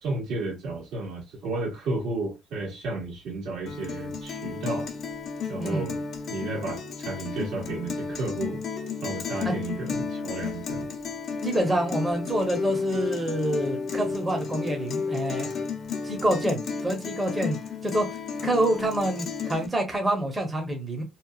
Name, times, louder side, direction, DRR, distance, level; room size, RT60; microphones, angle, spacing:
voice 1, 0.0-4.9 5.5-6.0 6.3-8.6 9.0-10.9, right 2 dB, 75° right, 1.4 m, -32 dB
Guitar, 3.7-19.7, left 5 dB, 55° left, 0.6 m, -33 dB
voice 2, 11.4-15.5 16.0-17.6 17.8-18.1 18.4-21.0, right 1 dB, 15° right, 0.8 m, -27 dB
2.9 x 2.2 x 2.3 m
cardioid pair, 130°, 0 cm